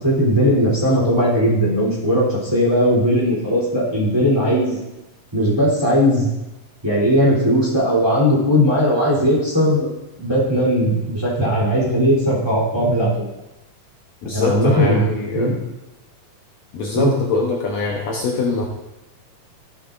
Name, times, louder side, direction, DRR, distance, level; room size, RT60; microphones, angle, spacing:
voice 1, 0.0-4.8 5.3-6.3 6.8-9.9 10.2-13.1 14.3-15.0 15.3-15.5 16.9-17.1, equal, 10° right, -6 dB, 2.8 m, -18 dB
voice 2, 14.2-15.5 16.7-18.7, left 3 dB, 70° left, -1 dB, 2.0 m, -23 dB
14.0 x 8.3 x 2.6 m, 0.96 s
omnidirectional pair, 3.7 m